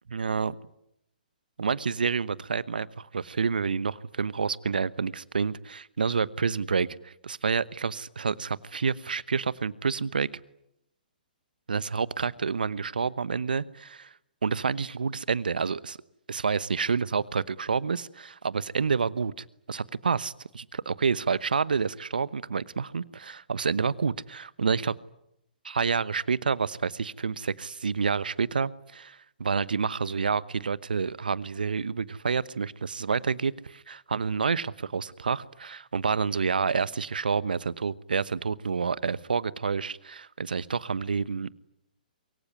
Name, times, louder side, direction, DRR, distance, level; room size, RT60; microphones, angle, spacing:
voice 1, 0.1-0.6 1.6-10.3 11.7-14.1 14.4-16.0 16.3-24.9 25.6-41.5, right 5 dB, 70° right, 19 dB, 1.1 m, -29 dB
23.5 x 23.5 x 9.9 m, 0.79 s
figure-of-eight pair, 125°, 5 cm